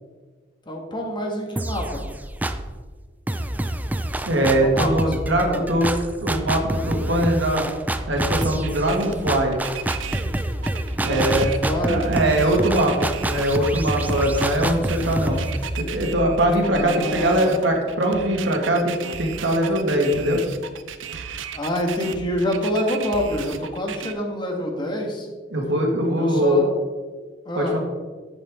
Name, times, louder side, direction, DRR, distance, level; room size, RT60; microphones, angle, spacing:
voice 1, 0.7-2.0 4.6-4.9 5.3-5.7 10.9-12.1 16.7-17.5 21.5-25.3 26.1-26.7 27.5-27.8, equal, 25° left, 1 dB, 1.7 m, -27 dB
sound 1, 1.6-2.8 3.3-17.0, right 1 dB, 10° right, 0.4 m, -27 dB
voice 2, 4.3-5.9 6.2-7.7 8.1-9.6 11.0-11.5 11.8-15.4 15.8-20.4 25.5-26.6 27.6-27.8, right 1 dB, 70° right, 1 dB, 1.9 m, -21 dB
sound 2, 8.1-24.1, right 7 dB, 85° right, 0.7 m, -35 dB
10.5 x 8.2 x 3.7 m, 1.4 s
head